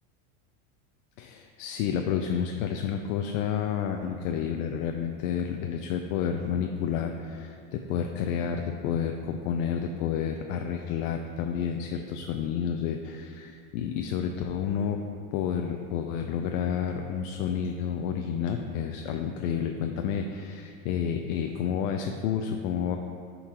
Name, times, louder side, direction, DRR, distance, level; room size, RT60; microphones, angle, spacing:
voice 1, 1.2-15.0 15.3-23.0, left 8 dB, 65° left, 4 dB, 0.5 m, -30 dB
11.0 x 3.9 x 3.0 m, 2.4 s
supercardioid pair, 145°, 45 cm